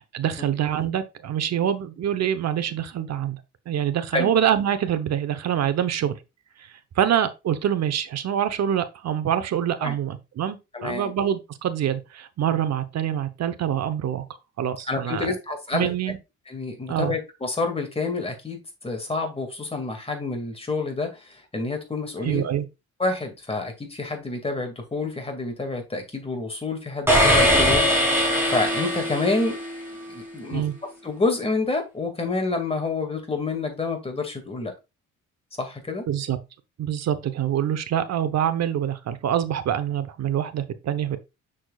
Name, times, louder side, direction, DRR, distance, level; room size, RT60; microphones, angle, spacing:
voice 1, 0.1-3.4 3.7-6.2 6.6-14.2 14.6-15.3 15.7-16.2 16.9-17.2 22.2-22.7 30.5-30.7 36.1-36.4 36.8-41.2, right 10 dB, 60° right, 0.9 m, -25 dB
voice 2, 10.7-11.1 14.9-15.9 16.5-22.4 23.0-29.6 30.1-30.7 31.0-34.7 35.6-36.1, left 3 dB, 20° left, 2.2 m, -28 dB
sound 1, 27.1-29.9, equal, 10° right, 3.9 m, -21 dB
6.5 x 6.1 x 2.4 m
cardioid pair, 90°, 30 cm